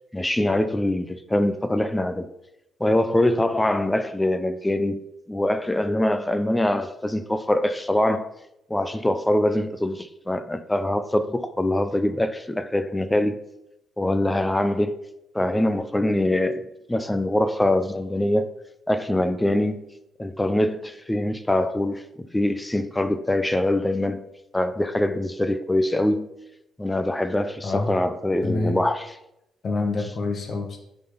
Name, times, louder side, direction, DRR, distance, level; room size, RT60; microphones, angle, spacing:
voice 1, 0.1-2.3 2.8-8.3 8.7-13.4 14.0-15.0 15.3-18.5 18.9-19.9 20.2-24.3 24.5-26.3 26.8-29.1, left 1 dB, 10° left, 0.5 m, -23 dB
voice 2, 28.4-28.8 29.6-30.8, left 2 dB, 50° left, 1.3 m, -27 dB
9.0 x 3.9 x 4.0 m
cardioid pair, 90°, 0 cm